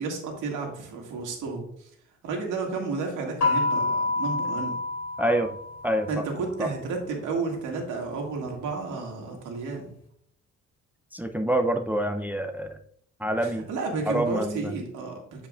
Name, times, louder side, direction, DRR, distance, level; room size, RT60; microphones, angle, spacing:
voice 1, 0.0-1.9 2.2-4.8 6.1-9.9 13.4-15.5, right 4 dB, 85° right, 1 dB, 2.0 m, -32 dB
sound 1, 3.4-6.1, left 3 dB, 60° left, 2.8 m, -27 dB
voice 2, 5.2-5.5 5.8-6.1 6.6-6.7 11.1-12.8 13.2-13.6 14.1-14.7, right 1 dB, 5° right, 6 dB, 0.6 m, -26 dB
9.2 x 5.0 x 2.4 m, 0.67 s
cardioid pair, 90°, 30 cm